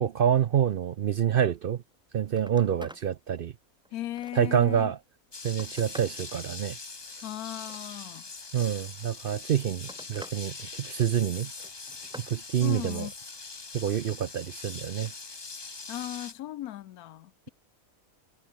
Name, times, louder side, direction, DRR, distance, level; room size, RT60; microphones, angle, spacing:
voice 1, 0.0-1.8 2.1-3.5 4.3-5.0 5.4-6.8 8.5-11.5 12.3-13.1 13.7-15.1, right 9 dB, 65° right, 0.5 m, -27 dB
Telephone, 1.8-2.0 2.3-3.1 3.6-4.6 5.2-6.2 7.5-8.3 9.3-10.4 10.8-11.2 11.6-12.4 14.8-15.2 16.6-16.7, equal, 5° right, 1.9 m, -49 dB
voice 2, 3.9-4.9 7.2-8.2 12.6-13.1 15.9-17.5, left 13 dB, 85° left, 1.2 m, -37 dB
sound 1, 5.3-16.3, left 4 dB, 25° left, 0.7 m, -42 dB
omnidirectional pair, 1.5 m